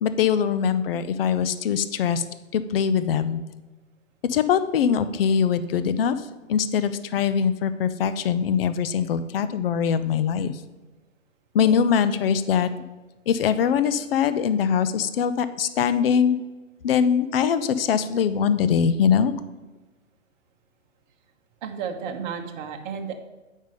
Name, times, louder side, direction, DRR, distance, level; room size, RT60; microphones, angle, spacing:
voice 1, 0.0-2.2 2.5-3.4 4.2-10.5 11.5-12.7 13.3-16.4 16.8-19.3, left 7 dB, 50° left, 12 dB, 0.7 m, -22 dB
voice 2, 21.6-23.2, right 6 dB, 35° right, 3 dB, 0.9 m, -32 dB
8.8 x 5.4 x 5.2 m, 1.2 s
figure-of-eight pair, 115°, 38 cm